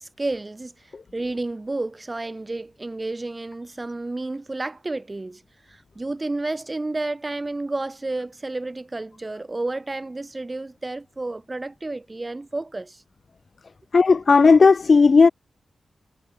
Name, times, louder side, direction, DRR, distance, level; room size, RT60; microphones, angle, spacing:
voice 1, 0.0-5.4 5.7-13.0, right 2 dB, 25° right, 7.0 m, -31 dB
voice 2, 13.9-15.3, left 4 dB, 55° left, 0.6 m, -14 dB
cardioid pair, 75°, 0 cm